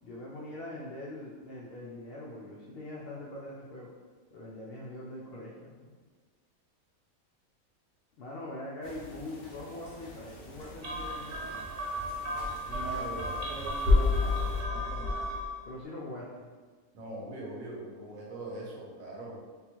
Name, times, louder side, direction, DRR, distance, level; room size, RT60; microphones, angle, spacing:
voice 1, 0.0-3.9 4.3-5.9 8.2-11.6 15.6-16.5, left 1 dB, 75° left, -5 dB, 0.5 m, -42 dB
sound 1, 8.8-14.6, right 1 dB, 55° left, 1.0 m, -47 dB
sound 2, 10.8-15.6, left 2 dB, 50° right, 0.7 m, -30 dB
voice 2, 12.7-15.3 16.9-19.4, right 2 dB, 70° right, -4 dB, 1.2 m, -42 dB
3.5 x 2.3 x 2.9 m, 1.5 s
omnidirectional pair, 1.5 m